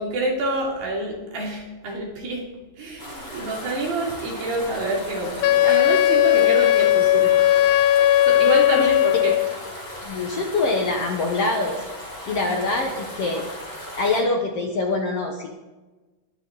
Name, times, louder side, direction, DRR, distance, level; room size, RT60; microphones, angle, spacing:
voice 1, 0.0-2.4 2.8-7.7 7.9-9.4, right 2 dB, 85° right, -2 dB, 4.7 m, -27 dB
sound 1, 3.0-14.2, left 1 dB, 10° left, 5.0 m, -37 dB
Wind instrument woodwind instrument, 5.4-9.6, left 13 dB, 90° left, 1.7 m, -17 dB
voice 2, 10.0-11.8 12.3-13.4 14.0-15.5, left 3 dB, 60° left, 2 dB, 1.7 m, -24 dB
21.5 x 8.1 x 4.1 m, 1.2 s
omnidirectional pair, 4.1 m